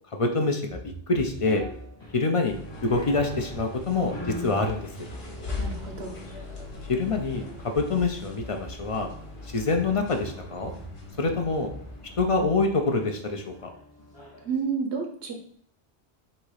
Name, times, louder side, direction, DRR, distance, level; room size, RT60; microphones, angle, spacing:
voice 1, 0.1-0.8 1.1-1.6 2.1-2.6 2.8-4.9 6.9-9.1 9.5-10.7 11.2-11.7 12.2-13.7, left 3 dB, 45° left, 3 dB, 0.4 m, -26 dB
sound 1, 0.7-2.0 3.1-6.8 7.7-9.0 9.7-13.6, right 1 dB, 25° right, 0.8 m, -44 dB
sound 2, 1.3-14.6, equal, 25° left, 1.0 m, -45 dB
sound 3, 2.4-12.7, left 2 dB, 70° left, 1.4 m, -40 dB
voice 2, 5.6-6.1 14.4-15.3, right 5 dB, 80° right, 4 dB, 1.1 m, -30 dB
3.9 x 2.8 x 4.7 m, 0.63 s
omnidirectional pair, 1.1 m